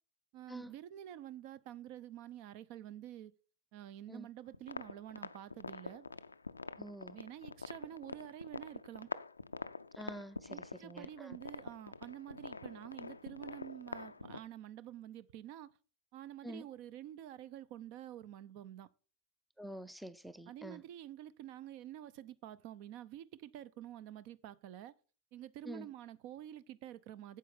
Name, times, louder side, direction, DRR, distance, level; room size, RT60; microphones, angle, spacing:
voice 1, 0.3-3.3 3.7-6.1 7.1-9.1 10.5-15.7 16.1-18.9 20.5-24.9 25.3-27.4, right 12 dB, 45° right, 0.6 m, -49 dB
sound 1, 4.5-14.4, left 3 dB, 80° left, 0.4 m, -46 dB
voice 2, 6.8-7.2 9.9-11.4 16.4-16.7 19.6-20.8 25.6-25.9, right 1 dB, ahead, 0.6 m, -47 dB
9.4 x 7.8 x 5.3 m
figure-of-eight pair, 90°, 0 cm